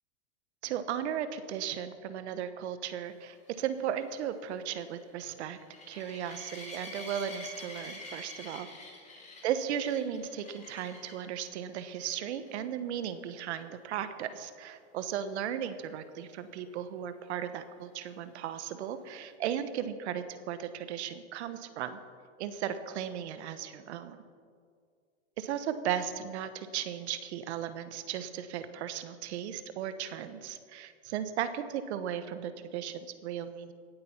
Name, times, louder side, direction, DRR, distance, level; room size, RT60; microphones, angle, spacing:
voice 1, 0.6-5.6 5.9-8.7 9.4-22.0 22.4-24.2 25.4-33.7, right 9 dB, 70° right, 11 dB, 1.2 m, -36 dB
sound 1, 3.3-11.3 11.9-12.2 12.5-12.6 13.0-13.1 16.6-16.7, left 2 dB, 20° left, 3.5 m, -47 dB
17.0 x 8.6 x 5.8 m, 2.1 s
hypercardioid pair, 120°, 35 cm